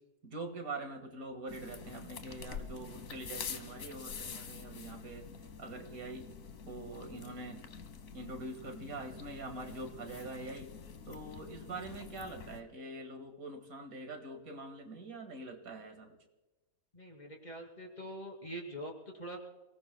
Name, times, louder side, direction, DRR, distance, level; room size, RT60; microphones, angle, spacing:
voice 1, 0.2-5.3 5.6-6.3 6.7-7.6 8.1-10.7 11.1-16.2, right 2 dB, 75° right, 5 dB, 2.3 m, -44 dB
sound 1, 1.5-12.6, left 6 dB, 70° left, 1.5 m, -47 dB
voice 2, 16.9-19.5, right 1 dB, 30° left, 1 dB, 3.1 m, -44 dB
28.5 x 18.5 x 2.2 m, 1.1 s
omnidirectional pair, 1.5 m